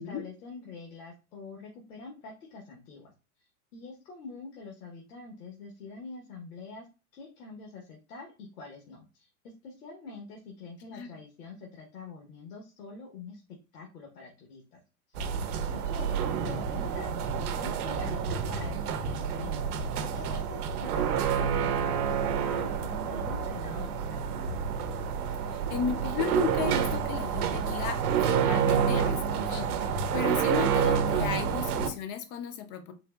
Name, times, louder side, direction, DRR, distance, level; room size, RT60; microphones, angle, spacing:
voice 1, 0.0-3.1 3.4-6.9 7.1-14.8 15.1-15.3 15.7-19.8 20.1-24.4, left 4 dB, 80° left, 1 dB, 1.1 m, -45 dB
sound 1, 15.1-31.9, right 7 dB, 75° right, 0.7 m, -29 dB
voice 2, 25.5-28.0 28.3-29.2 29.5-32.9, left 7 dB, 30° left, 7 dB, 0.4 m, -34 dB
3.9 x 2.7 x 2.2 m, 0.31 s
supercardioid pair, 135°, 45 cm